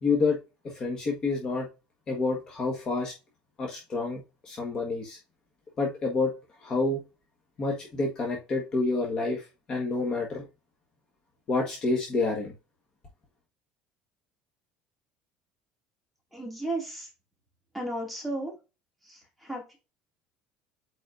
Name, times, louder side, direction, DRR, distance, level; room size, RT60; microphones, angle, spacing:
voice 1, 0.0-0.4 0.6-1.7 2.1-3.1 3.6-5.2 5.8-6.3 6.6-7.0 7.6-10.4 11.5-12.5, left 3 dB, 25° left, 1.5 m, -28 dB
voice 2, 16.3-17.1 17.7-18.5 19.0-19.8, right 1 dB, ahead, 2.4 m, -34 dB
8.7 x 4.2 x 2.6 m
cardioid pair, 175°, 3 cm